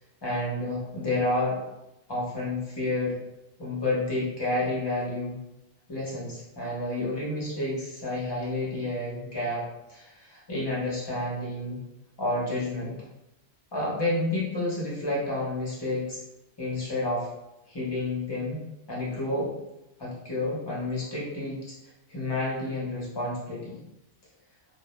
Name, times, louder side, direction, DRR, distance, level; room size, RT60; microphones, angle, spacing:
voice 1, 0.2-1.6 2.1-3.2 3.6-5.4 5.9-9.6 9.9-11.8 12.2-13.0 13.7-16.2 16.6-17.3 17.7-19.5 20.0-21.8 22.1-23.8, left 2 dB, 30° left, -6 dB, 0.5 m, -30 dB
2.1 x 2.0 x 2.9 m, 0.92 s
omnidirectional pair, 1.3 m